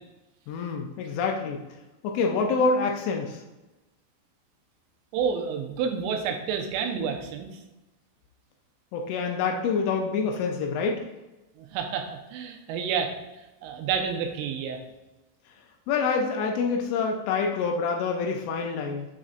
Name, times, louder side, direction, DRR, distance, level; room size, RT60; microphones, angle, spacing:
voice 1, 0.5-1.6 2.0-3.4 8.9-11.0 15.9-19.1, left 4 dB, 80° left, 2 dB, 2.9 m, -26 dB
voice 2, 5.1-7.6 11.6-14.8, right 6 dB, 85° right, 3 dB, 3.2 m, -30 dB
8.9 x 4.2 x 2.5 m, 1.0 s
omnidirectional pair, 5.8 m